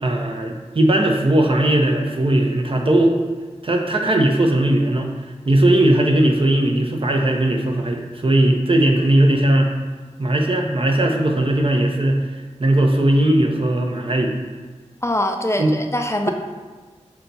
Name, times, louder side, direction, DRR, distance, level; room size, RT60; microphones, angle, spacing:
voice 1, 0.0-3.2 3.6-5.1 5.5-9.7 10.2-12.3 12.6-14.4 15.6-15.7, right 1 dB, 45° right, 2 dB, 0.6 m, -18 dB
voice 2, 15.0-16.3, left 1 dB, 25° left, 4 dB, 0.3 m, -22 dB
5.5 x 2.3 x 3.9 m, 1.4 s
cardioid pair, 40°, 12 cm